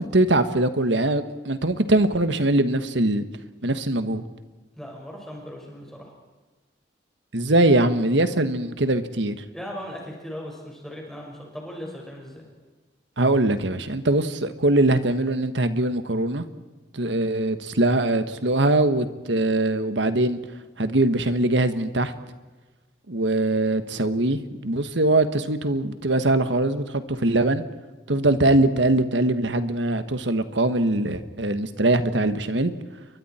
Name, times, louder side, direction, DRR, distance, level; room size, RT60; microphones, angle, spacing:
voice 1, 0.0-3.2 3.6-4.2 7.3-9.4 13.2-16.4 16.9-20.4 20.8-22.1 23.1-27.6 28.1-32.7, right 2 dB, 80° right, 10 dB, 1.5 m, -22 dB
voice 2, 4.7-6.1 9.5-12.4, equal, ahead, -2 dB, 5.2 m, -38 dB
30.0 x 23.0 x 4.4 m, 1.3 s
head